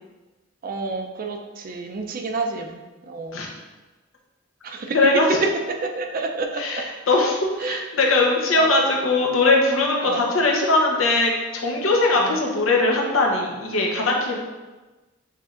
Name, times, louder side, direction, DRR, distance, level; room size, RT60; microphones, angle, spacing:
voice 1, 0.6-2.8 3.1-3.4 4.6-5.0 5.8-6.6 7.6-7.8 8.5-8.7 10.0-10.2, right 3 dB, 45° right, 4 dB, 0.5 m, -29 dB
voice 2, 4.9-5.4 6.6-14.4, left 2 dB, 90° left, -1 dB, 0.8 m, -20 dB
6.5 x 3.3 x 2.4 m, 1.2 s
head